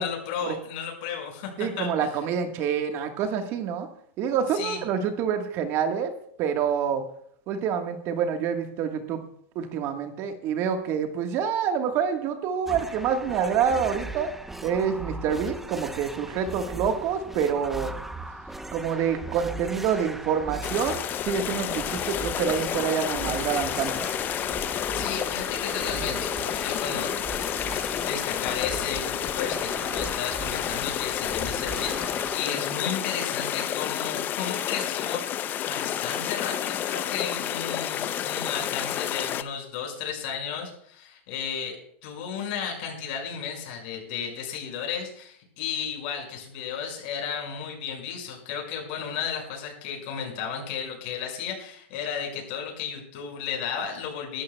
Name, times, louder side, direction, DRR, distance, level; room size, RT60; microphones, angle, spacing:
voice 1, 0.0-2.1 4.5-4.8 24.9-27.3 27.9-35.4 35.7-54.4, left 7 dB, 60° left, 1 dB, 5.7 m, -34 dB
voice 2, 1.6-3.9 4.2-6.1 6.4-7.0 7.5-9.2 9.5-14.3 14.6-17.9 18.7-24.1, right 7 dB, 45° right, 5 dB, 1.5 m, -27 dB
sound 1, 12.7-32.4, right 2 dB, 5° right, 0.8 m, -38 dB
sound 2, 20.6-39.4, left 11 dB, 30° left, 0.6 m, -30 dB
20.5 x 12.5 x 2.3 m, 0.64 s
supercardioid pair, 135°, 6 cm